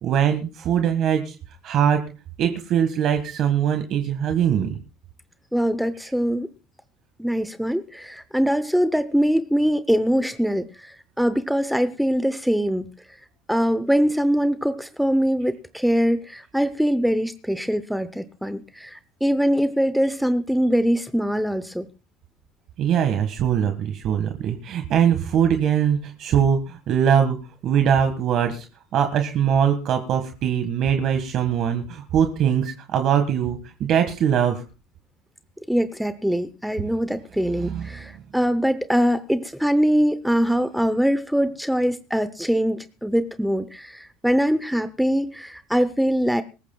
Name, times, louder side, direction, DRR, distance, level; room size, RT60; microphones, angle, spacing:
voice 1, 0.0-1.3 1.6-2.1 2.4-4.7 22.8-27.4 27.6-28.6 28.9-34.6 37.5-38.0, right 8 dB, 45° right, 1.6 m, -22 dB
voice 2, 5.5-6.5 7.2-12.9 13.5-21.9 35.7-46.4, equal, ahead, 0.7 m, -23 dB
24.0 x 14.5 x 2.3 m
supercardioid pair, 135°, 0 cm